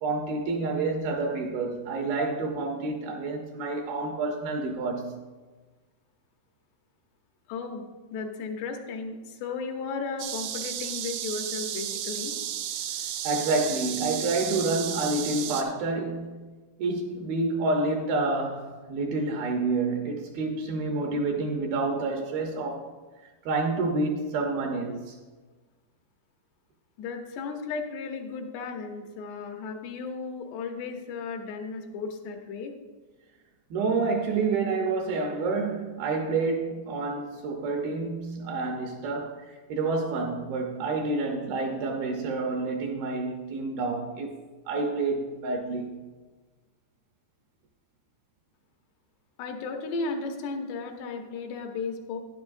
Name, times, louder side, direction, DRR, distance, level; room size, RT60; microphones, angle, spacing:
voice 1, 0.0-5.1 13.2-16.3 16.8-22.9 23.5-25.2 33.7-44.4 44.7-46.0, right 3 dB, 75° right, 2.4 m, -28 dB
voice 2, 7.5-7.8 8.1-12.4 27.0-32.7 49.4-52.2, left 4 dB, 80° left, 3.0 m, -35 dB
sound 1, 10.2-15.6, right 10 dB, 90° right, 2.8 m, -33 dB
12.0 x 10.5 x 2.6 m
omnidirectional pair, 4.8 m